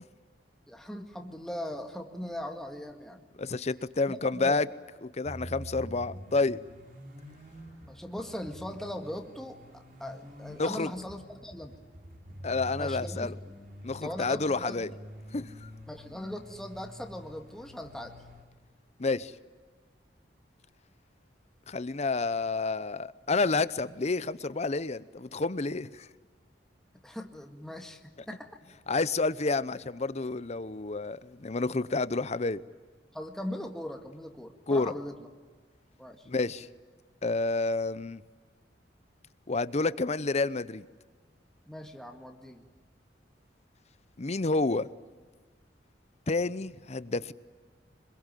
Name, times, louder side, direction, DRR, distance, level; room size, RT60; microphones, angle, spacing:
voice 1, 0.7-3.2 4.1-4.6 7.8-11.7 12.8-13.3 14.0-14.9 15.9-18.1 27.0-28.6 33.1-35.3 36.0-36.3 41.7-42.6, left 1 dB, 5° left, 1.9 m, -40 dB
voice 2, 3.4-4.7 5.0-6.6 10.6-10.9 12.4-13.3 13.8-14.9 15.3-15.7 19.0-19.3 21.7-26.1 28.9-32.6 34.7-34.9 36.3-36.7 37.2-38.2 39.5-40.9 44.2-44.9 46.3-47.3, left 3 dB, 40° left, 0.8 m, -29 dB
sound 1, 5.3-18.4, equal, 55° right, 4.3 m, -46 dB
26.0 x 22.0 x 9.2 m
head